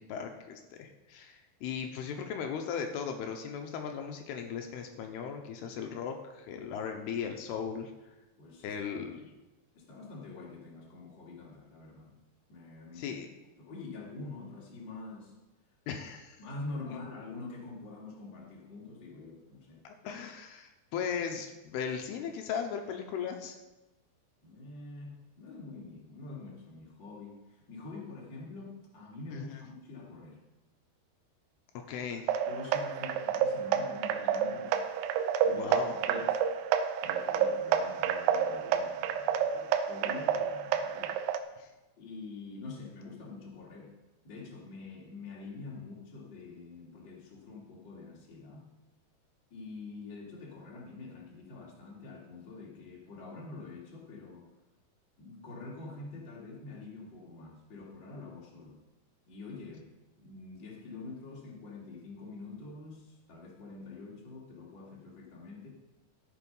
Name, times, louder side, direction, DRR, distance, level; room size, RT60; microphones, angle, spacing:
voice 1, 0.0-7.9 8.6-9.3 13.0-13.3 15.9-16.4 19.8-23.6 29.3-29.6 31.9-32.3 35.5-35.9 41.6-41.7, left 7 dB, 85° left, 4 dB, 2.9 m, -37 dB
voice 2, 8.3-9.0 9.7-12.2 12.5-13.2 13.6-15.3 16.4-19.8 24.4-30.4 32.5-34.8 35.4-36.4 37.0-41.2 42.0-43.9 44.2-48.7 49.5-54.5 55.2-58.8 59.3-59.9 60.1-65.7, left 3 dB, 35° left, -3 dB, 2.6 m, -46 dB
sound 1, 32.3-41.4, right 8 dB, 90° right, 2.7 m, -29 dB
13.0 x 6.8 x 5.5 m, 1.0 s
omnidirectional pair, 4.6 m